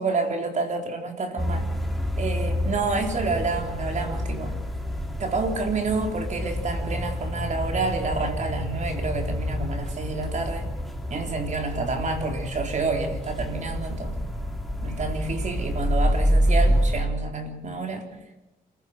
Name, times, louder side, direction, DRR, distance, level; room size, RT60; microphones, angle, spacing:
voice 1, 0.0-1.7 2.2-4.5 5.2-10.7 11.1-14.2 14.8-18.1, right 3 dB, 50° right, 4 dB, 4.0 m, -29 dB
sound 1, 1.4-17.0, equal, ahead, 3.0 m, -28 dB
27.5 x 15.0 x 7.9 m, 1.0 s
cardioid pair, 110°, 16 cm